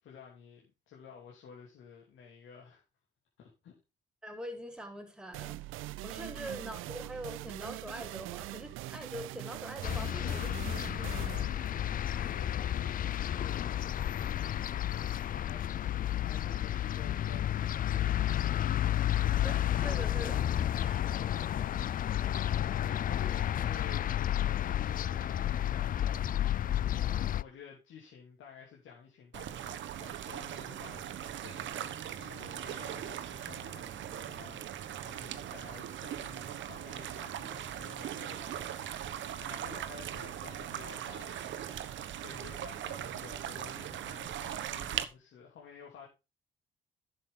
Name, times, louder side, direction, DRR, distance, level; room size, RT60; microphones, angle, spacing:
voice 1, 0.0-2.8 3.4-3.7 6.3-6.6 12.2-13.9 14.9-15.9 16.2-18.9 21.4-21.9 22.4-24.1 24.6-27.1 27.4-46.1, left 6 dB, 75° left, 3.1 m, -52 dB
voice 2, 4.2-5.6 6.0-11.5 12.0-12.3 19.4-21.0, equal, 5° right, 4.0 m, -44 dB
sound 1, 5.3-12.8, right 17 dB, 85° right, 0.4 m, -43 dB
sound 2, 9.8-27.4, left 11 dB, 45° left, 0.4 m, -31 dB
sound 3, 29.3-45.0, right 10 dB, 70° right, 1.1 m, -40 dB
11.0 x 7.6 x 3.7 m
cardioid pair, 90°, 20 cm